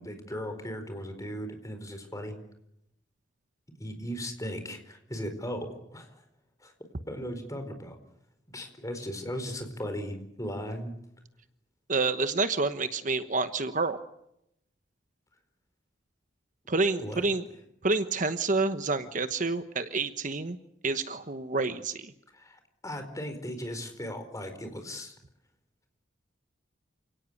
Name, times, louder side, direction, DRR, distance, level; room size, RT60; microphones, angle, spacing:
voice 1, 0.0-2.4 3.8-6.1 6.6-6.7 7.1-8.0 8.5-10.9 17.0-17.2 22.3-25.2, equal, 15° left, 7 dB, 4.5 m, -37 dB
voice 2, 11.9-14.0 16.7-17.4 17.8-20.6 20.8-22.1, right 3 dB, 40° right, 10 dB, 1.1 m, -28 dB
28.5 x 18.0 x 9.8 m, 0.79 s
head